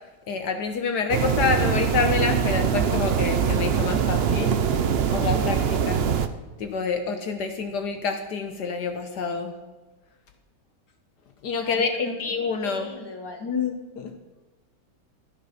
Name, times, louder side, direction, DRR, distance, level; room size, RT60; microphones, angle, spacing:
voice 1, 0.3-4.6 5.1-6.0 6.6-9.6 11.4-12.9 13.4-14.1, left 5 dB, 70° left, 6 dB, 1.5 m, -27 dB
sound 1, 1.1-6.3, right 7 dB, 70° right, 0.5 m, -23 dB
voice 2, 11.6-12.4 12.6-13.5, left 2 dB, 15° left, 2 dB, 1.7 m, -39 dB
14.0 x 10.5 x 5.6 m, 1.2 s
omnidirectional pair, 1.9 m